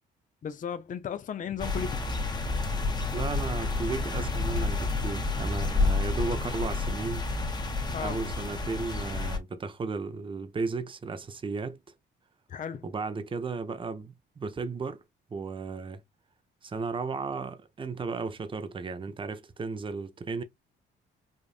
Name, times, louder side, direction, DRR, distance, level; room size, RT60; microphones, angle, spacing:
voice 1, 0.4-2.0 7.9-8.2 12.5-12.9, left 8 dB, 40° left, 0.6 m, -35 dB
sound 1, 1.6-9.4, left 3 dB, 20° left, 1.0 m, -30 dB
voice 2, 3.1-7.3 8.0-11.8 12.8-15.0 15.3-16.0 16.6-20.4, right 4 dB, 25° right, 0.6 m, -34 dB
5.1 x 2.5 x 2.4 m
cardioid pair, 90°, 20 cm